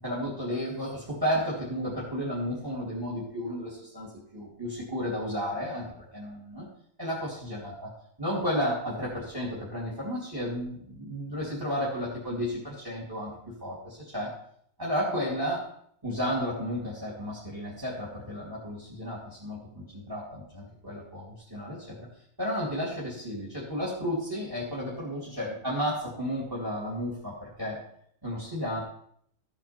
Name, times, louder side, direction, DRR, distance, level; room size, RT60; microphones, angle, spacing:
voice 1, 0.0-5.9 6.1-6.7 7.0-7.7 8.2-14.3 14.8-15.6 16.0-22.1 22.4-27.8 28.2-28.8, equal, 15° right, -5 dB, 2.6 m, -33 dB
14.0 x 8.8 x 4.4 m, 0.67 s
omnidirectional pair, 1.6 m